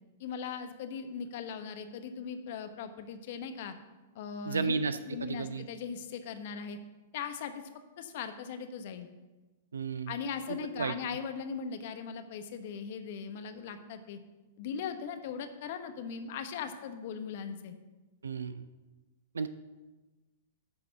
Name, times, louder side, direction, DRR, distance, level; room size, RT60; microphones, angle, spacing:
voice 1, 0.2-3.7 4.1-4.7 5.1-6.8 7.1-7.6 8.0-9.1 10.1-14.2 14.6-17.7, left 6 dB, 60° left, 8 dB, 1.0 m, -39 dB
voice 2, 4.5-5.7 9.7-10.1 10.8-10.9 18.2-18.7 19.3-19.5, right 4 dB, 85° right, 12 dB, 0.4 m, -33 dB
11.0 x 4.1 x 6.9 m, 1.2 s
hypercardioid pair, 110°, 0 cm